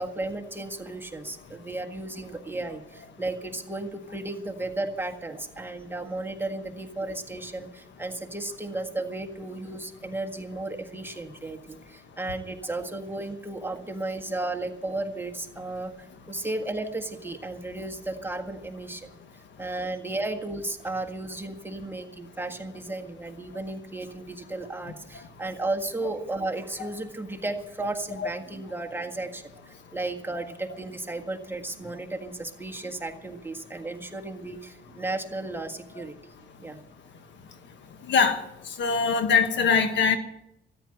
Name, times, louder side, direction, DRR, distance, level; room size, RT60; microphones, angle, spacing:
voice 1, 0.0-19.1 19.6-36.1 36.6-36.8, right 2 dB, 10° right, 1.6 m, -34 dB
voice 2, 38.1-38.4 38.8-40.2, left 5 dB, 65° left, 1.5 m, -22 dB
13.5 x 10.0 x 7.7 m
cardioid pair, 90°, 20 cm